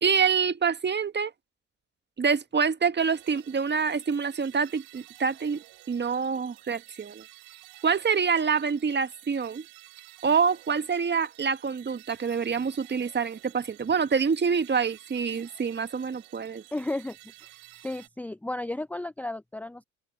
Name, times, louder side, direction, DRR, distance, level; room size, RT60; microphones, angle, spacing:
voice 1, 0.0-1.3 2.2-7.2 7.8-9.6 10.2-16.6, right 6 dB, 30° right, 1.7 m, -26 dB
sound 1, 3.0-18.1, right 22 dB, 65° right, 3.8 m, -52 dB
voice 2, 16.7-17.2 17.5-17.6 17.8-19.8, left 2 dB, 5° left, 0.7 m, -33 dB
open air
hypercardioid pair, 60°, 38 cm